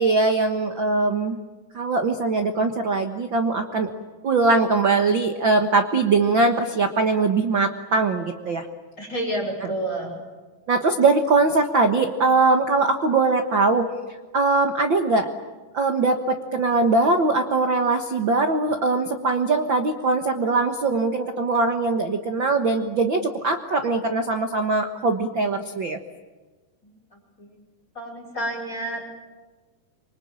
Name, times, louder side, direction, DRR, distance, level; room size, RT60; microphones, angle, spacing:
voice 1, 0.0-1.4 1.7-3.9 4.2-8.7 9.6-9.7 10.7-13.9 14.3-15.3 15.7-26.0, right 3 dB, 85° right, 6 dB, 1.0 m, -21 dB
voice 2, 9.0-10.2 28.0-29.0, right 1 dB, 20° left, 2 dB, 5.6 m, -29 dB
26.5 x 24.5 x 8.8 m, 1.3 s
omnidirectional pair, 4.5 m